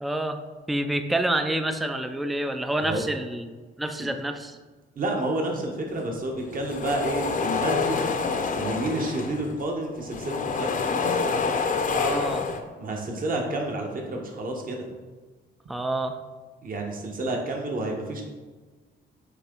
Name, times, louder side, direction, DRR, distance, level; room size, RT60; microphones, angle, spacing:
voice 1, 0.0-0.4 0.7-3.5 3.8-4.6 11.9-12.5 15.7-16.2, right 1 dB, ahead, 7 dB, 0.4 m, -28 dB
voice 2, 5.0-8.0 8.5-10.9 12.8-14.8 16.6-18.2, right 2 dB, 45° right, 1 dB, 1.3 m, -30 dB
sound 1, 6.4-9.6 9.9-12.6, left 4 dB, 40° left, 0.6 m, -27 dB
8.2 x 3.0 x 3.8 m, 1.3 s
cardioid pair, 90°, 20 cm